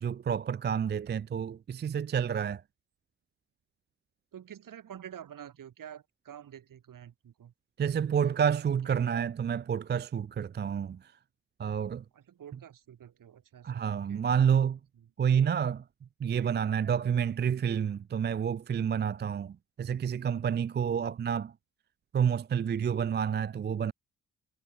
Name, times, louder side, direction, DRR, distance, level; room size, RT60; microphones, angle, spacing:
voice 1, 0.0-2.6 7.8-11.0 11.6-12.0 13.6-14.8 15.2-15.8 16.2-21.5 22.1-23.9, right 8 dB, 30° right, 0.5 m, -29 dB
voice 2, 4.3-7.5 8.2-8.3 8.8-9.1 12.1-14.3 15.0-15.1, right 9 dB, 60° right, 3.1 m, -48 dB
supercardioid pair, 60°, 36 cm